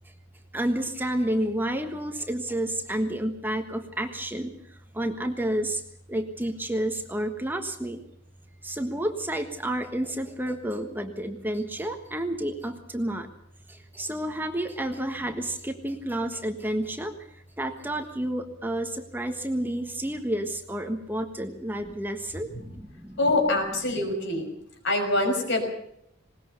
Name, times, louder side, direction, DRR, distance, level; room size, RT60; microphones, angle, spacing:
voice 1, 0.5-4.5 4.9-5.8 6.1-8.0 8.6-13.3 13.9-17.1 17.6-23.2, right 1 dB, 10° right, 6 dB, 1.4 m, -30 dB
voice 2, 23.2-24.5 24.8-25.7, left 2 dB, 65° left, 4 dB, 6.1 m, -25 dB
20.5 x 19.0 x 6.8 m, 0.73 s
head